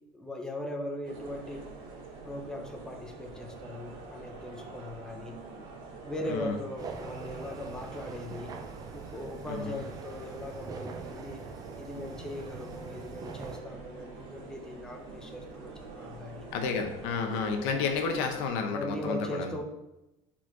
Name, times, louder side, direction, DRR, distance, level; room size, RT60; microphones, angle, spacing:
voice 1, 0.1-1.7 2.2-5.4 6.0-8.6 8.9-11.4 11.8-16.5 18.7-19.6, left 1 dB, 5° left, 2 dB, 0.8 m, -39 dB
sound 1, 1.0-18.5, right 3 dB, 75° right, 2.2 m, -46 dB
sound 2, 6.8-13.6, right 4 dB, 30° right, 0.6 m, -44 dB
voice 2, 9.5-9.8 16.5-19.5, left 5 dB, 85° left, 5 dB, 1.0 m, -31 dB
5.0 x 4.3 x 5.9 m, 0.95 s
cardioid pair, 150°, 13 cm